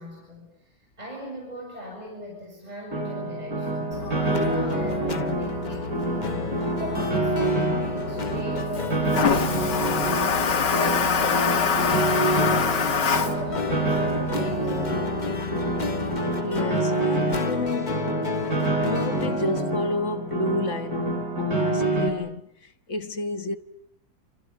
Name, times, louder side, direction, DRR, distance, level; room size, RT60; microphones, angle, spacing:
voice 1, 0.0-15.5, left 1 dB, 20° right, 7.6 m, -40 dB
Piano, 2.9-22.1, right 2 dB, 55° right, 5.5 m, -27 dB
Toilet flush, 3.9-16.1, left 6 dB, 70° left, 2.3 m, -28 dB
sound 1, 4.3-19.6, left 4 dB, 30° left, 1.1 m, -33 dB
voice 2, 16.4-18.1 18.8-23.6, left 2 dB, 45° left, 1.6 m, -30 dB
29.5 x 28.0 x 7.2 m
omnidirectional pair, 2.0 m